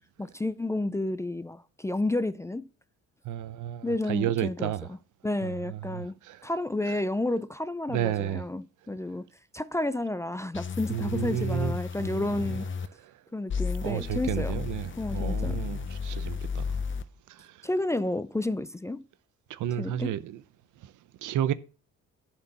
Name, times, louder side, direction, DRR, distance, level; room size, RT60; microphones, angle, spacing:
voice 1, 0.2-2.7 3.8-5.0 5.2-6.2 6.4-9.3 9.5-12.7 13.3-14.5 15.0-15.6 17.6-19.0 19.8-20.1, left 2 dB, 10° left, 0.4 m, -31 dB
voice 2, 3.2-4.9 5.4-6.5 6.8-7.0 7.9-8.4 10.9-12.6 13.0-13.2 13.8-16.8 17.3-17.7 19.5-20.4 20.8-20.9 21.2-21.5, right 11 dB, 80° right, 0.7 m, -32 dB
sound 1, 10.5-12.9 13.5-17.0, left 5 dB, 40° left, 0.8 m, -33 dB
11.0 x 4.5 x 6.7 m
cardioid pair, 90°, 30 cm